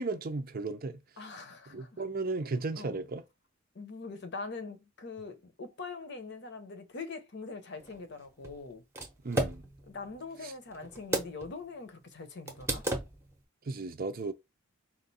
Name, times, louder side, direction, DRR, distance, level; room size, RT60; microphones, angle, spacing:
voice 1, 0.0-1.0 1.7-3.2 9.2-9.6 10.4-10.5 13.6-14.3, right 3 dB, 45° right, 0.5 m, -35 dB
voice 2, 1.2-2.0 2.8-3.0 3.7-8.8 9.9-12.8, left 4 dB, 55° left, 0.8 m, -43 dB
sound 1, 7.8-11.6 11.9-12.0 12.5-13.4, right 1 dB, 10° right, 0.8 m, -35 dB
4.3 x 2.5 x 4.1 m
head